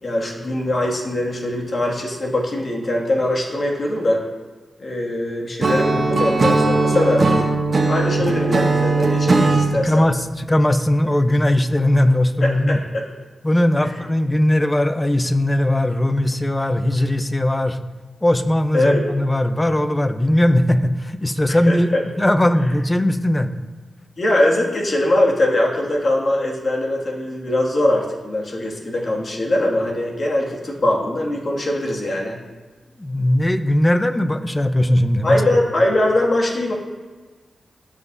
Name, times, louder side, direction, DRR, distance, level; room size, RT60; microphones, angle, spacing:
voice 1, 0.0-4.2 4.8-7.4 7.9-10.0 12.4-13.0 13.8-14.0 18.7-19.0 21.5-22.0 24.2-32.4 35.2-36.7, left 1 dB, 55° left, -2 dB, 2.1 m, -21 dB
Acoustic guitar / Strum, 5.6-9.7, right 3 dB, 55° right, 0.9 m, -18 dB
voice 2, 9.8-12.8 13.4-17.8 18.2-21.9 22.2-23.5 33.0-35.4, left 1 dB, 20° left, 10 dB, 0.7 m, -19 dB
16.5 x 6.0 x 2.7 m, 1.3 s
cardioid pair, 65°, 0 cm